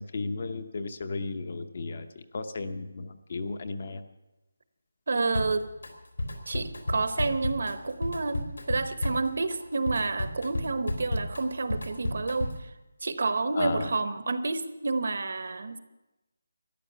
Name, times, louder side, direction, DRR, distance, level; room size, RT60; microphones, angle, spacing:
voice 1, 0.0-4.0 13.5-13.9, left 3 dB, 35° left, 9 dB, 0.7 m, -34 dB
voice 2, 5.1-5.7 6.5-12.7 13.0-15.8, right 3 dB, 50° right, 10 dB, 0.9 m, -29 dB
Drum kit, 5.3-5.9 6.2-12.7, left 1 dB, 80° left, 3.4 m, -33 dB
14.0 x 10.5 x 6.7 m, 1.0 s
figure-of-eight pair, 180°, 0 cm